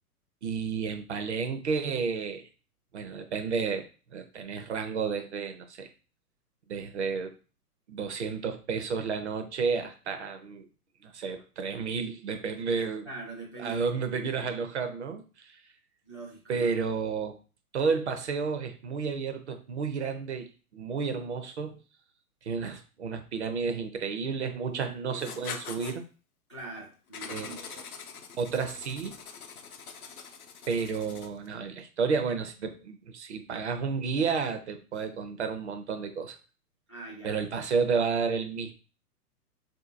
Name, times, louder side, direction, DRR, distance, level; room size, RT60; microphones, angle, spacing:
voice 1, 0.4-2.5 2.9-3.9 4.1-5.9 6.7-7.3 7.9-10.7 11.0-13.1 13.6-15.5 16.5-17.4 17.7-21.8 22.4-26.0 27.3-27.6 28.4-29.2 30.7-36.4 37.2-38.7, right 5 dB, 50° right, 7 dB, 0.6 m, -31 dB
voice 2, 13.0-14.7 16.0-16.7 24.7-25.4 26.5-27.6 36.9-37.4, right 3 dB, 20° left, -4 dB, 0.3 m, -44 dB
Writing, 25.2-26.0 27.1-31.5, left 6 dB, 70° left, 0.7 m, -43 dB
3.9 x 2.7 x 2.5 m, 0.35 s
figure-of-eight pair, 115°, 46 cm